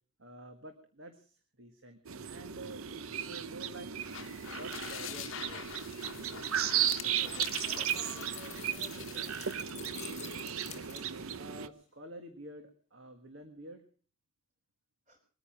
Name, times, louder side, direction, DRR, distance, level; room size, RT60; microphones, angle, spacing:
voice 1, 0.2-2.0 2.3-3.9 4.5-5.7 10.7-13.8, right 1 dB, 55° right, 6 dB, 1.6 m, -49 dB
sound 1, 2.0-11.7, right 9 dB, 70° right, 0.8 m, -35 dB
sound 2, 3.9-9.7, left 9 dB, 60° left, 1.0 m, -45 dB
voice 2, 7.0-9.4 15.1-15.2, equal, 40° right, -4 dB, 4.7 m, -55 dB
sound 3, 7.2-11.4, left 11 dB, 30° left, 0.8 m, -50 dB
22.5 x 9.7 x 6.0 m, 0.43 s
head